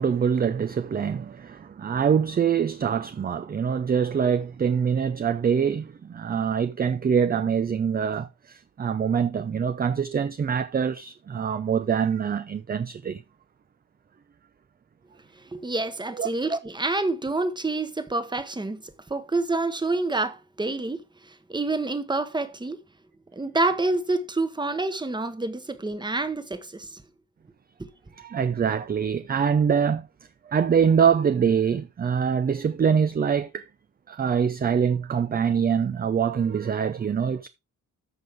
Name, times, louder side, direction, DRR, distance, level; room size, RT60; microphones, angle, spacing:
voice 1, 0.0-13.2 16.1-16.3 28.2-30.1 30.5-33.7 34.1-37.5, right 7 dB, 30° right, 0.4 m, -24 dB
voice 2, 15.5-18.8 19.1-21.0 21.5-22.8 23.3-27.0, right 2 dB, 15° right, 1.0 m, -27 dB
13.5 x 5.5 x 3.5 m
wide cardioid pair, 140°, 33 cm